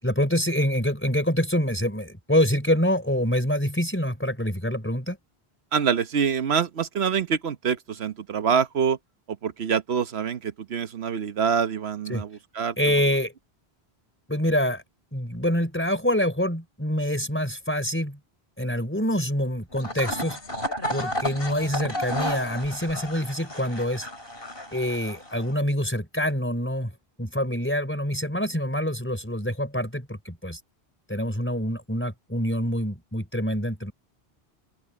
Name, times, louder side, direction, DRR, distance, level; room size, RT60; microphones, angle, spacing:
voice 1, 0.0-5.2 12.1-12.2 12.8-13.3 14.3-14.8 15.1-18.2 18.6-20.4 20.9-24.1 24.7-26.9 27.2-30.6 31.1-33.9, equal, 10° left, 4.3 m, -26 dB
voice 2, 5.7-9.0 9.4-12.9, right 7 dB, 80° right, 1.3 m, -25 dB
sound 1, 19.7-25.5, left 1 dB, 60° left, 5.1 m, -32 dB
open air
omnidirectional pair, 1.1 m